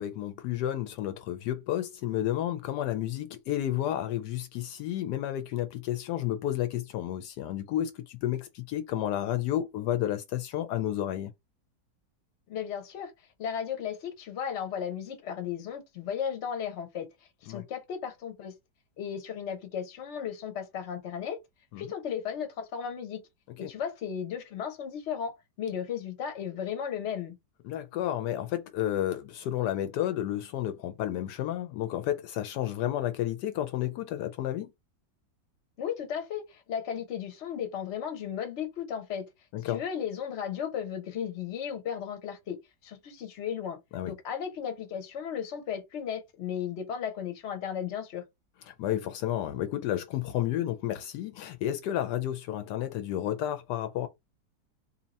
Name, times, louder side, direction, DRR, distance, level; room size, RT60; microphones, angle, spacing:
voice 1, 0.0-11.3 17.5-17.6 21.7-21.8 23.6-23.7 27.6-34.7 39.5-39.8 43.9-44.1 48.7-54.1, left 12 dB, 75° left, 1.1 m, -31 dB
voice 2, 12.5-13.1 13.4-17.1 17.4-18.5 19.0-21.4 21.8-23.2 23.6-27.3 35.8-39.3 39.7-42.6 42.8-48.2, left 8 dB, 50° left, 1.0 m, -35 dB
2.8 x 2.7 x 4.0 m
omnidirectional pair, 1.8 m